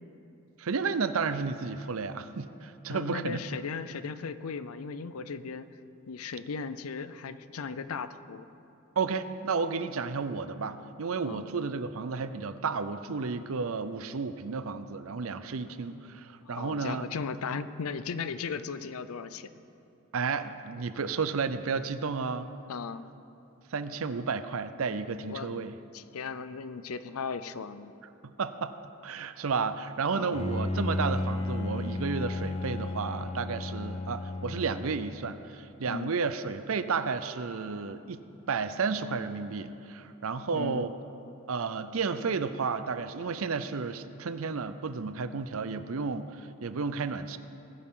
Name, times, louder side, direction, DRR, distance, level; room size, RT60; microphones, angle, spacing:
voice 1, 0.6-3.4 9.0-17.1 20.1-22.5 23.7-25.7 28.2-28.7 29.0-40.9 41.5-47.4, right 5 dB, 70° right, 12 dB, 0.6 m, -32 dB
voice 2, 2.9-5.7 6.1-8.5 11.2-11.5 16.4-19.5 22.7-23.1 25.3-25.5 25.9-27.9 30.1-30.5 35.9-36.1 40.5-40.9, left 5 dB, 80° left, 13 dB, 0.5 m, -37 dB
Bowed string instrument, 30.3-35.3, left 2 dB, 25° left, 0.5 m, -33 dB
20.0 x 9.9 x 3.8 m, 2.8 s
head